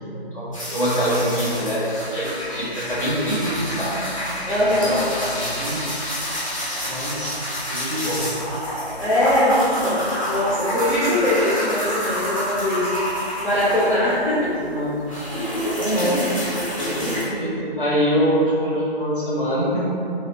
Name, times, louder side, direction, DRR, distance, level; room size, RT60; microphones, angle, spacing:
voice 1, 0.3-3.9 4.8-5.8 6.8-7.4 7.7-8.3 14.6-14.9 15.8-16.2 16.8-19.8, equal, 55° left, -8 dB, 1.0 m, -24 dB
sound 1, 0.5-14.3 14.6-17.2, equal, 30° left, 0.7 m, -28 dB
voice 2, 4.4-4.9 9.0-13.0 13.4-14.7 16.0-16.5, left 1 dB, 75° left, -11 dB, 1.1 m, -21 dB
3.2 x 2.2 x 3.1 m, 2.6 s
figure-of-eight pair, 160°, 32 cm